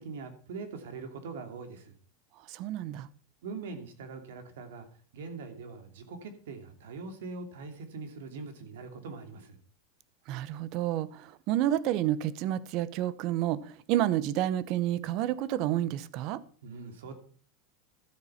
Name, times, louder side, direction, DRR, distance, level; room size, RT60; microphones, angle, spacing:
voice 1, 0.0-1.9 3.4-4.9 5.1-9.6 16.6-17.1, right 4 dB, 90° right, 2.8 m, -42 dB
voice 2, 2.5-3.1 10.3-16.4, right 12 dB, 40° right, 0.8 m, -30 dB
13.0 x 8.2 x 5.7 m
supercardioid pair, 165°, 0 cm